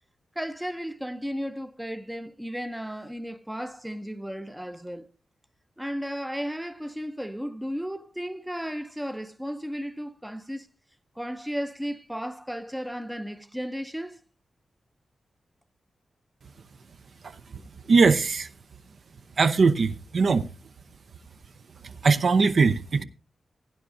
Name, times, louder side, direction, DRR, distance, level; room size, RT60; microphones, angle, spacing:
voice 1, 0.4-5.1 5.8-10.7 11.2-14.2, equal, 5° right, 0.6 m, -34 dB
voice 2, 17.9-18.5 19.4-20.5 21.8-23.0, right 4 dB, 50° right, 0.6 m, -21 dB
16.5 x 10.0 x 2.6 m
wide cardioid pair, 170°, 0 cm